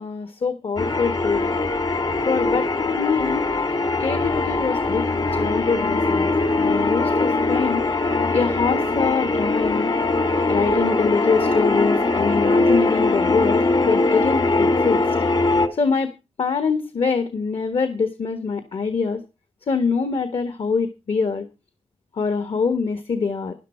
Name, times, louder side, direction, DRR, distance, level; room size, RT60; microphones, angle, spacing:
voice 1, 0.0-1.5 2.3-3.5 4.0-6.3 6.6-7.8 8.3-9.9 10.5-15.0 15.8-16.1 16.4-19.2 19.7-21.4 22.2-23.5, left 5 dB, 65° left, 9 dB, 1.4 m, -24 dB
sound 1, 0.8-15.7, left 2 dB, 50° left, 1.6 m, -21 dB
13.0 x 10.5 x 4.4 m, 0.28 s
wide cardioid pair, 115°, 10 cm